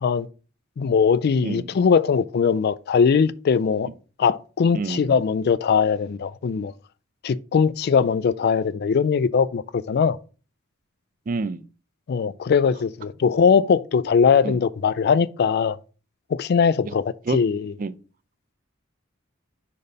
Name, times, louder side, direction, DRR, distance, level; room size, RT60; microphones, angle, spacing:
voice 1, 0.8-3.9 4.2-6.7 7.2-10.2 12.1-15.8 16.3-17.7, left 6 dB, 50° left, 0.3 m, -20 dB
voice 2, 4.7-5.2 11.3-11.6 14.4-14.6 16.9-17.0 17.3-17.4 17.8-17.9, right 3 dB, 40° right, 0.4 m, -28 dB
5.1 x 4.1 x 5.3 m
head